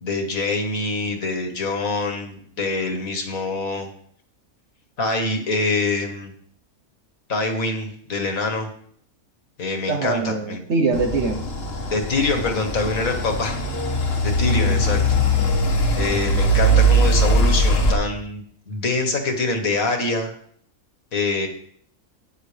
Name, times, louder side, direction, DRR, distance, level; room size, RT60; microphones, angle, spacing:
voice 1, 0.0-3.9 5.0-6.3 7.3-8.7 9.6-10.6 11.9-13.6 14.2-15.2 16.0-20.3 21.1-21.5, left 3 dB, 70° left, 3 dB, 2.1 m, -25 dB
voice 2, 9.9-11.5 14.7-14.8, right 4 dB, 55° right, 6 dB, 1.3 m, -23 dB
sound 1, 10.9-17.9, right 1 dB, 45° left, 1.4 m, -20 dB
12.5 x 9.4 x 3.4 m, 0.62 s
omnidirectional pair, 1.5 m